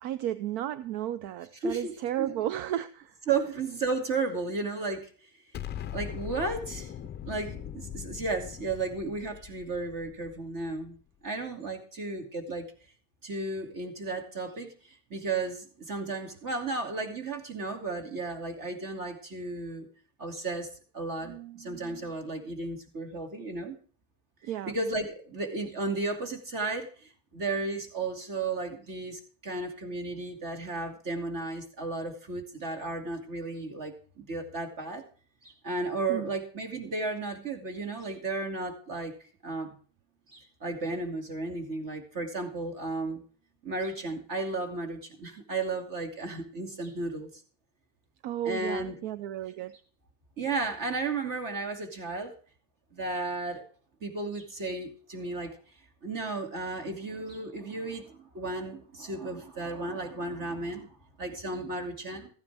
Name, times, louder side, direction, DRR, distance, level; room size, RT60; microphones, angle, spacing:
voice 1, 0.0-3.6 24.4-24.8 36.1-36.3 48.2-49.8, right 12 dB, 70° right, 0.7 m, -34 dB
voice 2, 1.6-2.3 3.3-5.1 5.9-6.9 7.2-11.0 11.2-12.7 13.2-19.9 20.2-20.7 20.9-23.8 24.4-35.0 35.4-39.1 39.4-39.7 40.3-43.2 43.6-47.3 48.4-49.0 50.4-52.3 52.9-53.6 54.0-55.6 56.0-62.3, right 3 dB, 40° right, 2.7 m, -34 dB
Explosion, 5.5-10.7, left 10 dB, 25° left, 0.4 m, -41 dB
14.5 x 9.8 x 3.5 m
cardioid pair, 155°, 48 cm